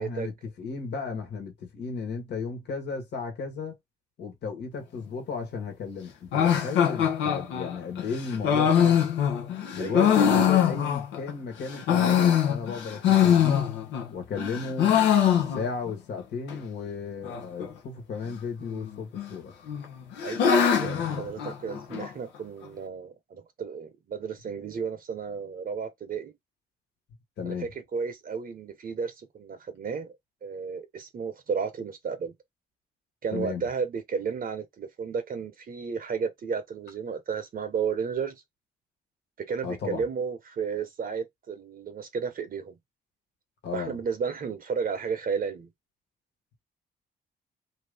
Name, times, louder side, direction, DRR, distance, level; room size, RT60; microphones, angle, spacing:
voice 1, 0.0-3.8 4.2-9.0 9.7-13.7 14.1-19.5 20.8-21.3 27.4-27.7 33.3-33.7 39.6-40.0 43.6-44.0, left 5 dB, 70° left, 1.3 m, -35 dB
sound 1, 6.3-11.3 11.7-14.1 14.4-15.9 16.2-16.3 16.5-16.6 17.2-17.7 18.7-19.3 19.7-22.1, left 8 dB, 85° left, 0.8 m, -23 dB
voice 2, 20.2-26.3 27.4-30.1 30.4-32.3 33.2-38.4 39.5-42.8 43.7-45.7, right 6 dB, 55° right, 0.8 m, -33 dB
2.6 x 2.6 x 3.4 m
supercardioid pair, 60°, 18 cm